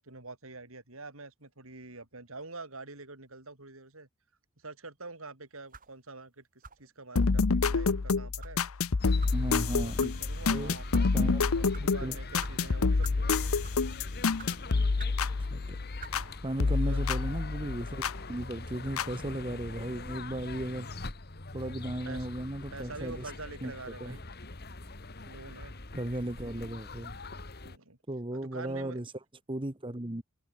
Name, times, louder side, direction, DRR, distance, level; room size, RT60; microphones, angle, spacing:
voice 1, 0.0-4.1 4.6-9.2 9.6-13.4 16.6-17.0 22.0-22.3 22.7-24.2 25.2-25.7 27.6-28.0 28.3-29.0, right 3 dB, 75° right, 5.2 m, -46 dB
sound 1, 5.7-6.0 6.6-6.9 7.6-7.8 8.4-8.6 9.2-9.4 10.0-10.1 10.8-11.1 11.7-11.9 12.4-12.5 13.0-13.2 13.6-13.9 14.4-14.5 15.0-15.2 16.0-16.2, right 4 dB, 40° right, 6.9 m, -47 dB
sound 2, 7.2-16.3 16.6-18.2 19.0-19.1, left 4 dB, 80° left, 0.8 m, -28 dB
sound 3, 9.0-27.8, left 2 dB, 50° left, 2.1 m, -42 dB
voice 2, 9.3-10.1 10.5-10.7 11.1-12.2 15.5-15.8 16.4-18.0 18.3-20.9 21.5-23.3 23.6-23.7 24.0-24.2 25.9-27.2 28.1-29.1 29.5-30.2, right 1 dB, 25° right, 1.5 m, -36 dB
head